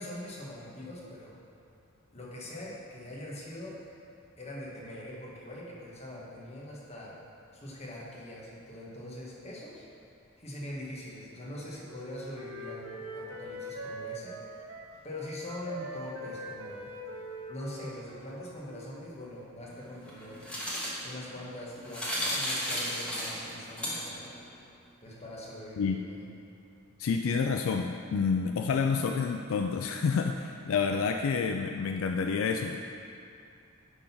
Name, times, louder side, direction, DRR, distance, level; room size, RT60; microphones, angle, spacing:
voice 1, 0.0-1.4 2.1-3.8 4.4-7.2 7.5-9.8 10.4-14.4 15.0-16.9 17.5-20.4 21.0-24.3 25.0-26.2, left 1 dB, 30° left, -5 dB, 1.5 m, -42 dB
Wind instrument woodwind instrument, 11.4-15.0 15.2-19.1, right 1 dB, 80° right, 0.7 m, -43 dB
sound 1, 19.7-24.4, equal, 5° left, 1.3 m, -35 dB
voice 2, 27.0-32.8, left 5 dB, 70° left, 5 dB, 0.3 m, -29 dB
10.0 x 3.9 x 5.8 m, 2.5 s
head